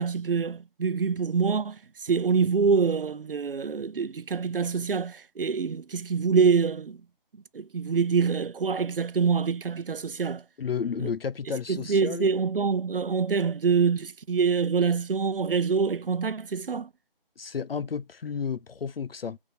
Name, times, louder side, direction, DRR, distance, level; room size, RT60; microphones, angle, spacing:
voice 1, 0.0-7.0 7.5-10.4 11.0-11.1 11.7-16.9, right 5 dB, 70° right, 0.6 m, -25 dB
voice 2, 10.6-12.3 17.4-19.4, left 6 dB, 75° left, 0.5 m, -32 dB
6.4 x 3.6 x 4.3 m
figure-of-eight pair, 160°, 29 cm